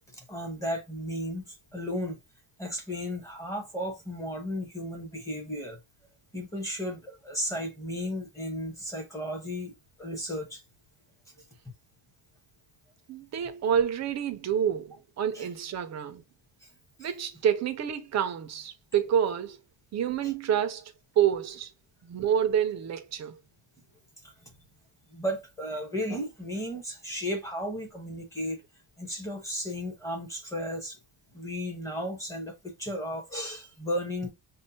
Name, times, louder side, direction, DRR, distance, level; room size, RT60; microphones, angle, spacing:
voice 1, 0.2-2.2 2.6-5.8 6.3-9.7 10.0-10.6 15.3-15.5 17.0-17.1 20.2-20.3 25.1-28.6 29.0-31.0 31.3-32.5 32.8-34.3, equal, 5° left, 0.8 m, -34 dB
voice 2, 13.1-16.2 17.0-19.6 19.9-21.7 22.0-23.4, right 9 dB, 35° right, 0.4 m, -28 dB
5.3 x 2.1 x 2.6 m
cardioid pair, 175°, 49 cm